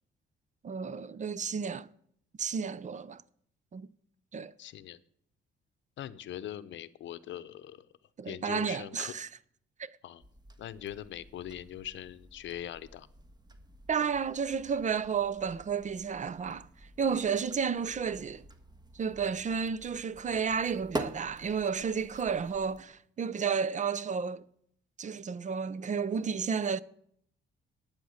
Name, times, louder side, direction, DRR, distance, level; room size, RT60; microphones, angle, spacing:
voice 1, 0.6-1.9 2.4-3.2 3.7-3.9 4.3-4.5 8.2-9.3 9.8-9.9 13.9-16.7 17.0-18.4 18.9-24.4 25.0-26.8, right 6 dB, 40° right, 0.6 m, -32 dB
voice 2, 4.6-5.0 6.0-7.9 8.2-9.1 10.0-10.2 10.6-13.1 19.2-19.4, left 11 dB, 70° left, 0.8 m, -42 dB
sound 1, 10.2-22.8, right 1 dB, 20° right, 1.3 m, -47 dB
12.0 x 8.9 x 6.4 m
cardioid pair, 90°, 20 cm